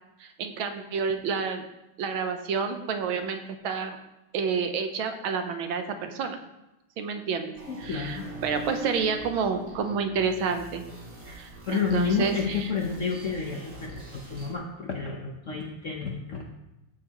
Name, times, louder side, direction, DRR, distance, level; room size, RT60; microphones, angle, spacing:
voice 1, 0.2-1.6 2.0-4.0 4.3-6.4 7.0-7.5 7.8-10.8 11.4-12.3, right 5 dB, 75° right, 7 dB, 1.6 m, -29 dB
sound 1, 7.5-14.5, right 2 dB, 40° right, 2.7 m, -42 dB
voice 2, 7.7-8.3 11.7-16.4, left 5 dB, 55° left, 0 dB, 0.8 m, -30 dB
14.0 x 6.6 x 2.9 m, 0.95 s
omnidirectional pair, 2.3 m